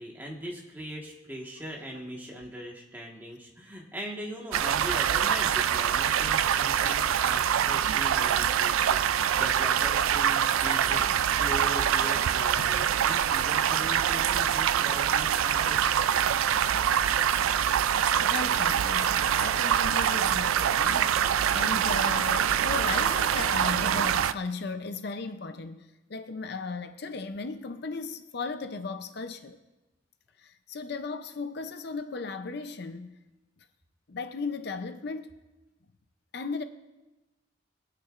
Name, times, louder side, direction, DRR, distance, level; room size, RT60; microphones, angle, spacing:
voice 1, 0.0-16.3, equal, 10° right, 1.4 m, -40 dB
sound 1, 4.5-24.3, right 9 dB, 90° right, 0.4 m, -25 dB
voice 2, 18.2-29.6 30.4-33.2 34.1-35.3 36.3-36.6, left 4 dB, 55° left, 0.5 m, -36 dB
22.0 x 9.1 x 2.5 m
head